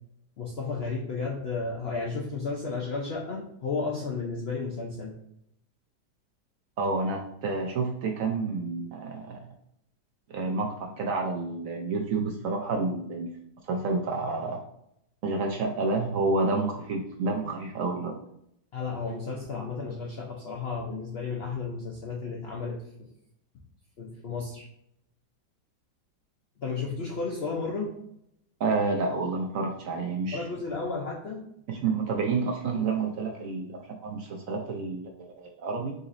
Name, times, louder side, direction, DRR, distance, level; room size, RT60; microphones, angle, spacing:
voice 1, 0.4-5.1 18.7-23.1 24.0-24.7 26.6-27.9 30.3-31.5, left 4 dB, 80° left, -2 dB, 0.5 m, -33 dB
voice 2, 6.8-9.4 10.3-13.3 13.6-14.6 15.2-18.2 28.6-30.5 31.7-35.1 35.4-35.9, right 3 dB, 70° right, 1 dB, 0.8 m, -29 dB
4.0 x 3.9 x 2.5 m, 0.74 s
omnidirectional pair, 1.8 m